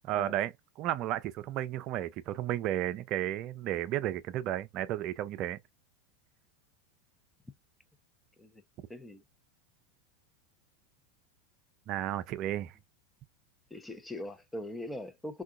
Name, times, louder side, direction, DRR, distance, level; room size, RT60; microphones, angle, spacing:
voice 1, 0.0-0.5 0.8-5.6 11.9-12.7, right 13 dB, 50° right, 0.4 m, -33 dB
voice 2, 8.9-9.2 13.7-15.4, left 1 dB, 10° left, 0.6 m, -41 dB
3.6 x 2.3 x 2.3 m
hypercardioid pair, 95°, 0 cm